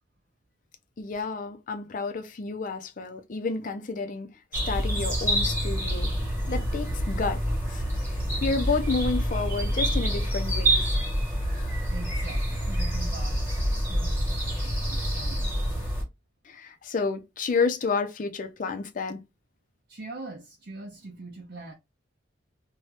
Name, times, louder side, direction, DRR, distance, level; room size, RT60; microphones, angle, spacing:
voice 1, 1.0-4.3 4.7-6.1 6.5-7.4 7.7-7.8 8.4-10.9 16.5-19.2, left 4 dB, 45° left, 0.5 m, -30 dB
sound 1, 4.5-16.0, equal, 15° right, 1.2 m, -27 dB
voice 2, 11.9-15.6 19.9-21.7, right 3 dB, 60° right, 0.7 m, -43 dB
2.7 x 2.2 x 3.2 m
head